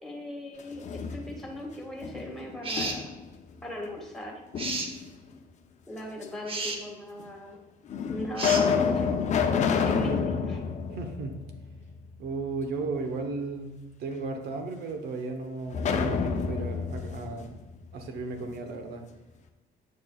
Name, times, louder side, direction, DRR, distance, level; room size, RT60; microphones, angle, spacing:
voice 1, 0.0-0.8 1.1-3.1 3.6-4.4 5.9-7.6 8.1-9.2 9.8-10.6, left 1 dB, ahead, -1 dB, 1.8 m, -38 dB
sound 1, 0.6-1.6 2.0-3.3 4.5-5.3 6.2-6.3 7.2-7.3 7.9-12.0 12.3-12.4 15.7-18.5, left 6 dB, 45° left, 0.6 m, -29 dB
sound 2, 2.6-3.0 4.6-4.9 6.5-6.8 8.4-8.7, right 3 dB, 35° right, 0.9 m, -31 dB
voice 2, 10.9-11.4 12.2-17.6 17.9-19.0, right 3 dB, 70° right, 5 dB, 1.0 m, -35 dB
8.4 x 6.6 x 2.4 m, 1.1 s
cardioid pair, 110°, 17 cm